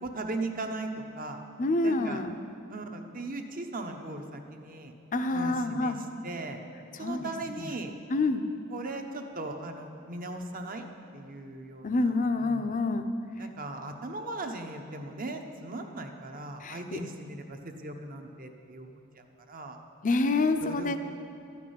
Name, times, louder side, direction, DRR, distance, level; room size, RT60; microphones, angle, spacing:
voice 1, 0.0-0.9 1.1-1.4 1.8-2.2 2.7-4.9 5.3-6.0 6.2-6.6 7.0-7.9 8.7-10.9 11.1-12.1 12.4-12.7 13.4-19.8 20.6-20.9, right 2 dB, 45° right, 4 dB, 1.0 m, -38 dB
voice 2, 1.6-2.4 5.1-6.0 7.0-7.2 7.6-7.7 8.1-8.4 11.8-13.1 16.6-17.0 20.0-21.0, left 2 dB, 40° left, 8 dB, 0.6 m, -27 dB
13.0 x 6.0 x 9.4 m, 2.8 s
head